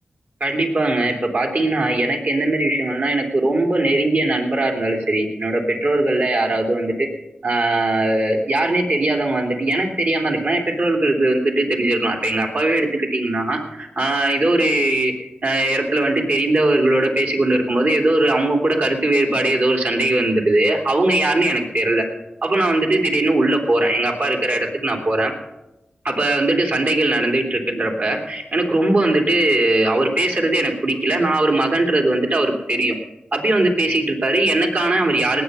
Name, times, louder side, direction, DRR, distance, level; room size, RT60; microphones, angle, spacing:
voice 1, 0.4-7.1 7.4-22.1 22.4-25.3 26.0-33.0 33.3-35.4, right 2 dB, 65° right, 2 dB, 3.0 m, -20 dB
19.0 x 8.6 x 5.6 m, 0.94 s
cardioid pair, 45°, 3 cm